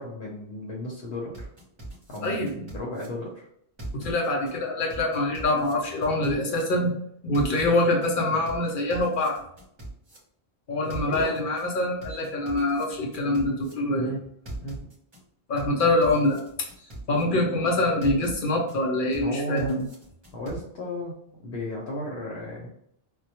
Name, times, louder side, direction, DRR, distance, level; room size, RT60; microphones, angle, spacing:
voice 1, 0.0-1.5 2.1-3.5 11.1-11.4 14.0-14.2 14.6-14.8 19.2-19.8 20.3-21.1 21.4-22.7, left 1 dB, 90° left, -3 dB, 0.9 m, -34 dB
sound 1, 1.3-3.1 3.8-4.5 4.9-6.6 7.3-8.1 8.4-10.2 10.9-11.6 12.0-13.7 14.4-15.2 15.6-17.2 18.0-18.7 19.1-20.6, right 1 dB, 30° right, 0.6 m, -40 dB
voice 2, 2.2-2.5 3.9-7.0 7.2-9.4 10.7-14.1 15.5-16.7 17.1-19.9, left 2 dB, 60° left, -1 dB, 0.6 m, -25 dB
2.2 x 2.1 x 2.7 m, 0.69 s
omnidirectional pair, 1.1 m